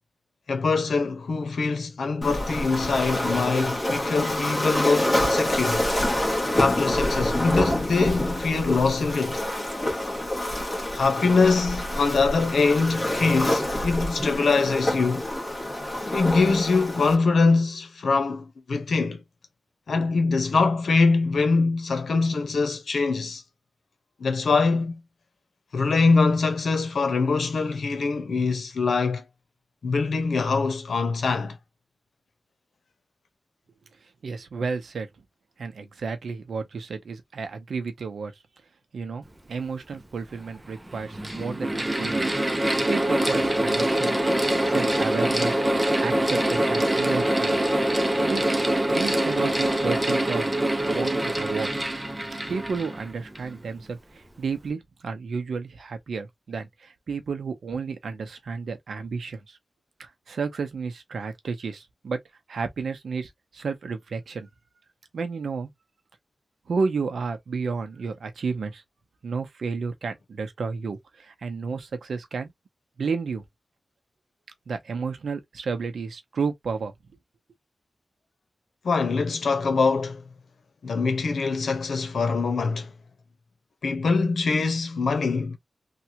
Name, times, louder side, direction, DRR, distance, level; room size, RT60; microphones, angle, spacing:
voice 1, 0.5-5.9 6.6-9.4 10.9-15.3 16.1-19.2 19.9-23.4 24.2-24.9 25.7-29.2 29.8-31.6 78.8-80.2 80.8-82.9 83.8-85.6, left 4 dB, 85° left, 0.9 m, -23 dB
Waves surf, 2.2-17.1, left 1 dB, 20° left, 1.4 m, -27 dB
voice 2, 34.2-35.1 35.6-38.3 38.9-42.3 42.9-44.2 44.6-45.6 46.0-47.7 48.2-48.5 48.8-50.5 50.9-51.9 52.5-59.6 60.0-62.2 62.5-64.5 65.1-65.7 66.7-68.8 69.2-72.5 73.0-73.4 74.7-76.9, right 5 dB, 90° right, 0.8 m, -32 dB
Mechanical fan, 39.9-40.0 40.9-53.5, right 1 dB, 15° right, 0.7 m, -24 dB
3.4 x 2.4 x 2.8 m
wide cardioid pair, 145°, 0 cm